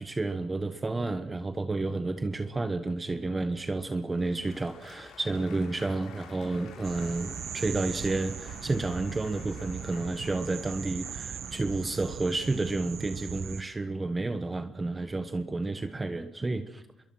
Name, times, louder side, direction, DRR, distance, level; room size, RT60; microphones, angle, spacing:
voice 1, 0.0-16.8, right 2 dB, 20° right, 9 dB, 1.3 m, -31 dB
Applause / Crowd, 3.0-12.6, left 6 dB, 80° left, 7.7 m, -51 dB
sound 1, 6.8-13.6, right 8 dB, 55° right, 0.7 m, -39 dB
26.5 x 23.0 x 6.2 m, 0.91 s
cardioid pair, 115°, 0 cm